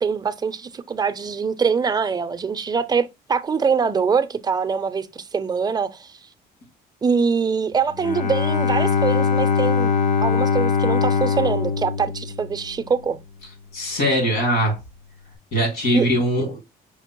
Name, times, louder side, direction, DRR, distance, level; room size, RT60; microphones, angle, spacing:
voice 1, 0.0-6.2 7.0-9.9 10.2-13.2 15.9-16.1, right 5 dB, 25° right, 0.5 m, -23 dB
Bowed string instrument, 8.0-12.9, left 6 dB, 50° left, 0.6 m, -21 dB
voice 2, 13.7-14.8 15.5-16.6, equal, 70° left, 2.4 m, -21 dB
5.8 x 2.0 x 4.5 m
cardioid pair, 110°, 17 cm